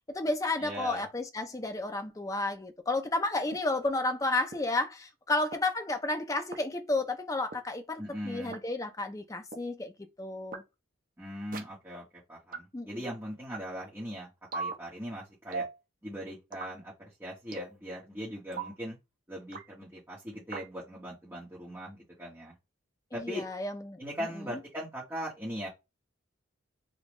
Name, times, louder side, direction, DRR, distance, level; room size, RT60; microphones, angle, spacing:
voice 1, 0.1-9.9 10.2-10.6 12.7-12.9 23.1-24.6, left 2 dB, 15° left, 0.4 m, -32 dB
voice 2, 0.6-1.0 8.0-8.5 11.2-15.7 16.0-19.0 19.3-22.5 23.1-23.5 24.0-25.7, equal, 15° right, 1.1 m, -40 dB
sound 1, 3.5-3.6 4.5-4.6 5.5-5.6 6.5-6.6 7.5-7.6 8.5-8.6 9.5-9.6 10.5-10.6 11.5-11.6 12.5-12.6 13.5-13.6 14.5-14.7 15.5-15.8 16.5-16.8 17.5-17.8 18.5-18.7 19.5-19.7 20.5-20.7, right 4 dB, 40° right, 0.6 m, -37 dB
5.1 x 2.3 x 3.0 m
head